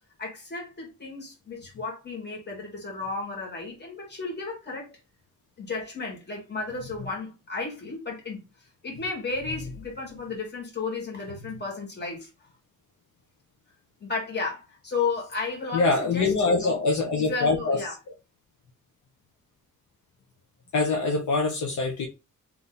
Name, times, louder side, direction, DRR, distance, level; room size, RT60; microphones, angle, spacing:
voice 1, 0.2-4.9 5.6-8.4 8.8-12.3 14.0-16.8 17.3-17.9, left 4 dB, 30° left, 2.3 m, -33 dB
voice 2, 15.7-17.8 20.7-22.1, left 3 dB, 65° left, 1.1 m, -24 dB
3.5 x 3.0 x 4.1 m
wide cardioid pair, 170°, 32 cm